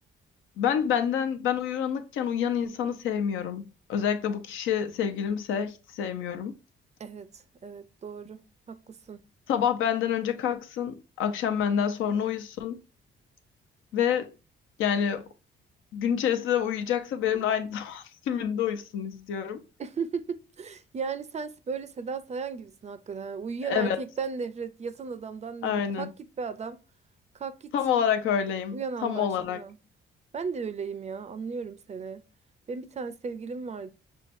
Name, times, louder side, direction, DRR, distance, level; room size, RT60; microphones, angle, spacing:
voice 1, 0.6-6.5 9.5-12.8 13.9-14.3 14.8-15.3 15.9-19.6 23.6-24.0 25.6-26.1 27.7-29.6, left 8 dB, 80° left, 0.6 m, -28 dB
voice 2, 7.0-9.2 19.8-26.1 26.4-26.8 27.3-27.7 28.7-29.8 30.3-32.3 32.7-33.9, right 5 dB, 35° right, 0.4 m, -36 dB
5.7 x 2.2 x 2.5 m
cardioid pair, 90°, 20 cm